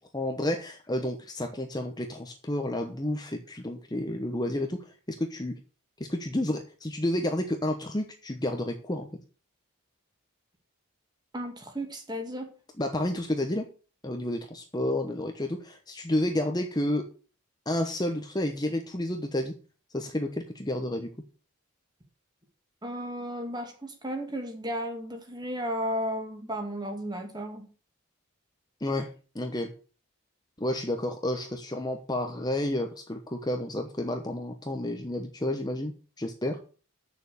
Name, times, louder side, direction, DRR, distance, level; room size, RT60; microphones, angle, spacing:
voice 1, 0.1-4.8 5.1-5.5 6.0-9.1 12.8-13.7 14.0-17.0 17.7-19.5 19.9-21.1 28.8-29.1 29.3-29.7 30.6-35.9 36.2-36.6, left 1 dB, 20° left, 1.0 m, -30 dB
voice 2, 11.3-12.5 22.8-27.7, equal, 20° right, 2.0 m, -34 dB
8.7 x 6.9 x 6.8 m
head